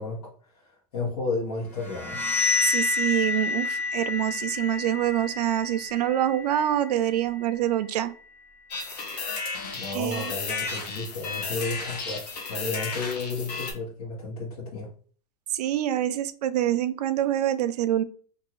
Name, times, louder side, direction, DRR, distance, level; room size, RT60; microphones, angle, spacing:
voice 1, 0.0-2.2 9.7-14.9, left 3 dB, 70° left, -6 dB, 1.3 m, -33 dB
sound 1, 1.8-7.4, left 4 dB, 5° left, 0.6 m, -29 dB
voice 2, 2.6-8.1 9.1-9.2 9.9-10.3 15.5-18.0, right 12 dB, 85° right, 12 dB, 0.4 m, -26 dB
sound 2, 8.7-13.7, left 4 dB, 85° left, 1.0 m, -33 dB
2.7 x 2.6 x 3.0 m, 0.43 s
supercardioid pair, 145°, 20 cm